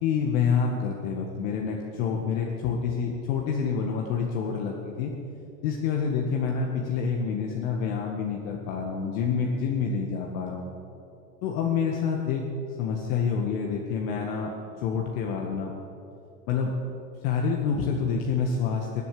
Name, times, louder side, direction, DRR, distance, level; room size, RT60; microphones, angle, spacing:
voice 1, 0.0-5.1 5.6-10.7 11.4-12.4 12.8-14.5 14.8-15.7 16.5-16.7 17.2-19.0, left 6 dB, 60° left, 0 dB, 1.9 m, -27 dB
23.0 x 8.0 x 6.8 m, 2.7 s
hypercardioid pair, 100°, 48 cm